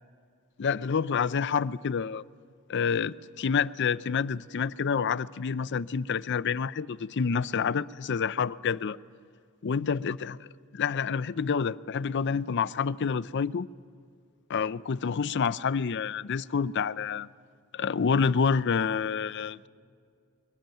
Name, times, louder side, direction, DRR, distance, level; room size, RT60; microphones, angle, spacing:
voice 1, 0.6-2.2 2.7-9.0 9.6-10.4 10.7-13.7 14.5-17.3 17.7-19.7, left 6 dB, 55° left, 0.5 m, -28 dB
23.0 x 18.0 x 9.1 m
head